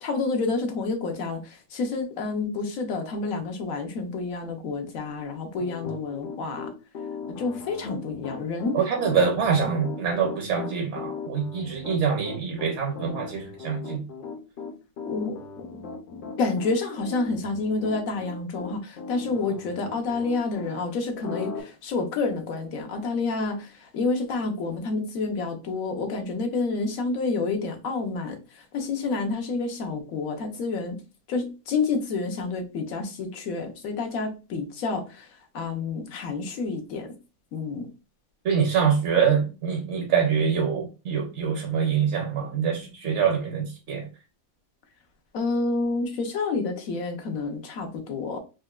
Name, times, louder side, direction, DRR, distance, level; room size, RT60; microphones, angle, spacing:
voice 1, 0.0-6.7 7.3-8.8 15.0-15.8 16.4-31.0 31.3-35.3 35.5-37.1 37.5-37.9 45.3-48.4, left 3 dB, 85° left, 1.2 m, -29 dB
Piano, 5.6-20.7 21.2-21.6, left 5 dB, 55° left, 0.6 m, -38 dB
voice 2, 8.7-14.0 38.4-44.1, right 6 dB, 65° right, 0.9 m, -25 dB
4.2 x 2.1 x 2.3 m
omnidirectional pair, 1.4 m